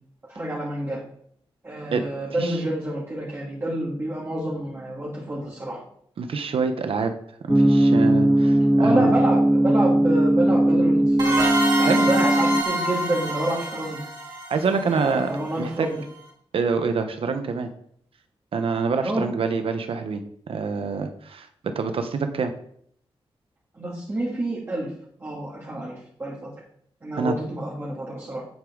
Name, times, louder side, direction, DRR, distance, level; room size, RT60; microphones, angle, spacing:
voice 1, 0.3-1.0 1.6-5.8 8.8-11.1 11.8-14.0 14.8-16.0 19.0-19.3 23.7-24.9 25.2-26.4 27.0-28.4, right 1 dB, 25° right, -6 dB, 2.6 m, -28 dB
voice 2, 6.2-7.1 7.4-9.1 11.8-12.1 14.5-15.9 16.5-17.7 18.5-22.5 27.2-27.3, right 5 dB, 70° right, 8 dB, 1.1 m, -26 dB
sound 1, 7.5-12.6, right 1 dB, 5° right, 0.4 m, -19 dB
sound 2, 11.2-15.7, right 1 dB, 45° right, 4.2 m, -27 dB
9.2 x 8.6 x 4.0 m, 0.65 s
wide cardioid pair, 160°, 10 cm